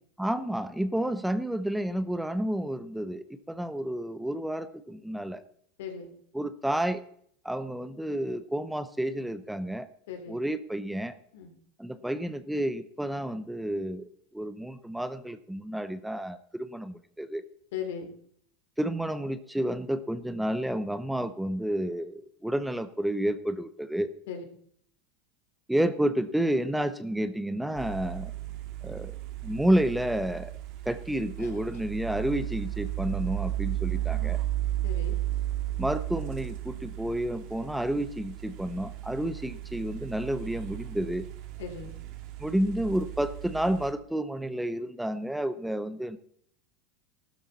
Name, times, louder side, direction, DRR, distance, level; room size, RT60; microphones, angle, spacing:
voice 1, 0.2-5.4 6.3-7.0 7.4-9.9 10.3-11.1 11.8-17.4 18.8-24.1 25.7-28.3 28.8-29.1 29.4-30.5 30.9-34.4 35.8-41.3 42.4-46.2, right 1 dB, 5° right, 12 dB, 0.8 m, -30 dB
voice 2, 5.8-6.1 10.1-10.4 11.3-11.5 17.7-18.1 24.3-24.4 31.4-31.5 34.8-35.2 41.6-41.9, left 7 dB, 80° left, 5 dB, 3.4 m, -37 dB
sound 1, 27.8-43.9, right 14 dB, 55° right, 2.1 m, -35 dB
15.0 x 12.5 x 4.2 m, 0.64 s
supercardioid pair, 125°, 0 cm